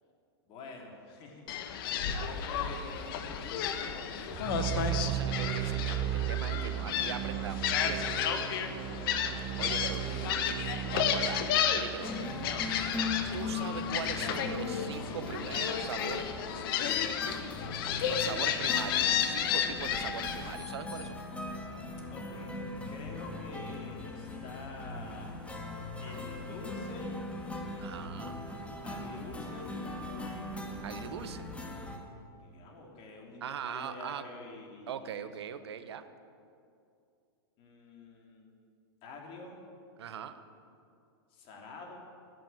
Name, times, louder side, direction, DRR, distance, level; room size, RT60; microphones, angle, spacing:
voice 1, 0.5-4.3 8.9-10.5 18.2-18.4 22.1-22.5 22.9-25.6 26.0-27.2 28.8-29.7 32.4-35.2 37.6-38.5 39.0-39.6 41.3-42.0, left 3 dB, 40° left, 0 dB, 3.1 m, -47 dB
Gull seagull, 1.5-20.5, left 8 dB, 60° left, 1.2 m, -32 dB
sound 1, 4.3-14.3, right 13 dB, 30° right, 0.3 m, -36 dB
voice 2, 4.5-8.1 9.6-10.0 10.9-12.3 13.0-16.3 18.1-21.2 27.8-28.4 30.8-31.5 33.4-34.3 34.9-36.0 40.0-40.4, right 8 dB, 80° right, 11 dB, 1.0 m, -41 dB
sound 2, 12.0-32.0, left 2 dB, 10° left, 1.7 m, -40 dB
11.0 x 9.2 x 8.9 m, 2.4 s
hypercardioid pair, 120°, 14 cm